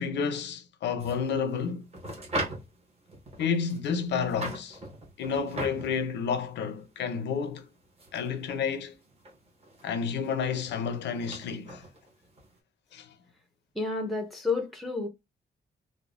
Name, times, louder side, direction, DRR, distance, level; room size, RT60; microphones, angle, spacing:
voice 1, 0.0-1.8 3.4-4.8 5.2-7.6 8.1-8.9 9.8-11.9 12.9-13.1, left 6 dB, 90° left, 0.5 m, -30 dB
sound 1, 1.0-12.6, right 1 dB, 35° right, 0.9 m, -41 dB
voice 2, 13.7-15.1, left 3 dB, ahead, 0.4 m, -30 dB
3.2 x 2.0 x 2.3 m
wide cardioid pair, 165°, 18 cm